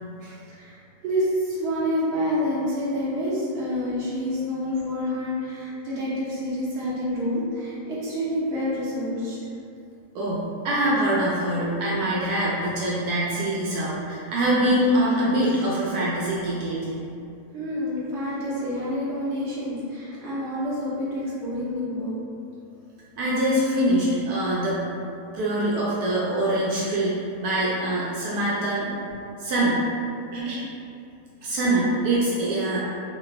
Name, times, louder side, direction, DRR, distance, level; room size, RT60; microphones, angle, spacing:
voice 1, 1.0-9.4 17.5-22.2, equal, 50° right, -9 dB, 1.0 m, -28 dB
voice 2, 10.1-17.0 23.2-24.8 25.3-27.2 27.4-28.9 29.4-29.8 30.3-30.6 31.4-32.9, right 1 dB, 80° right, -6 dB, 1.1 m, -24 dB
3.2 x 2.2 x 3.3 m, 2.5 s
omnidirectional pair, 1.7 m